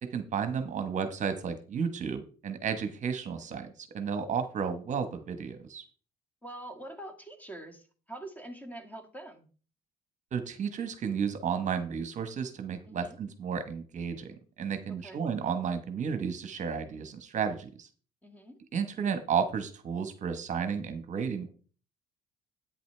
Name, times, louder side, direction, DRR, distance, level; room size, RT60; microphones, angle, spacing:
voice 1, 0.0-5.8 10.3-17.9 18.7-21.5, right 6 dB, 45° right, 9 dB, 1.1 m, -33 dB
voice 2, 6.4-9.5 12.9-13.2 14.9-15.2 18.2-18.6, right 1 dB, 10° left, 6 dB, 1.8 m, -45 dB
10.5 x 8.9 x 3.3 m, 0.39 s
cardioid pair, 110°, 17 cm